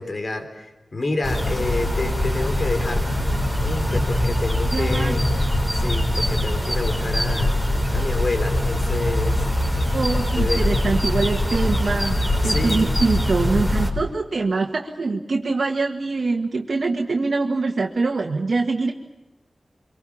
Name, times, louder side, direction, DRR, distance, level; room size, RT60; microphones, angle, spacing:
voice 1, 0.0-3.0 3.6-5.3 5.7-7.6 7.9-9.4 10.4-10.8 12.4-12.9, left 2 dB, 55° left, 7 dB, 3.7 m, -28 dB
sound 1, 1.2-13.9, left 1 dB, 20° left, 5.2 m, -22 dB
voice 2, 4.7-5.2 9.9-12.2 12.4-18.9, right 3 dB, 65° right, 1 dB, 1.8 m, -24 dB
25.0 x 24.5 x 7.3 m, 1.1 s
wide cardioid pair, 70°, 0 cm